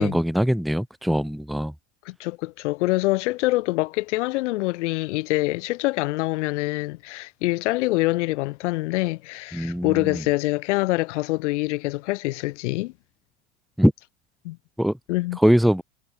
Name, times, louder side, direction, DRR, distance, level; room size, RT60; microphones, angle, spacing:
voice 1, 0.0-1.7 9.5-10.2 13.8-13.9 14.8-14.9 15.4-15.8, equal, ahead, 0.9 m, -21 dB
voice 2, 2.1-12.9 14.4-14.6 15.1-15.4, left 20 dB, 70° left, 2.2 m, -25 dB
hypercardioid pair, 80°, 37 cm